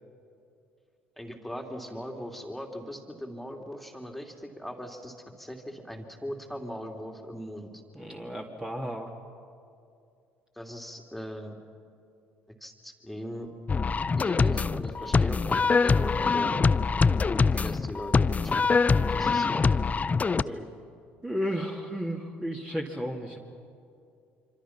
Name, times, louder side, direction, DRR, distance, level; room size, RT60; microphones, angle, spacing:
voice 1, 1.2-7.8 10.5-11.5 12.6-13.5 14.2-16.5 17.3-18.8 19.1-19.7 20.2-20.7, equal, ahead, 3 dB, 2.9 m, -39 dB
voice 2, 7.9-9.1 15.0-15.2 19.1-19.2 20.4-20.7 21.2-23.4, equal, 15° right, -1 dB, 2.5 m, -34 dB
sound 1, 13.7-20.4, left 4 dB, 25° left, 0.5 m, -24 dB
26.0 x 25.5 x 5.9 m, 2.5 s
hypercardioid pair, 60°, 6 cm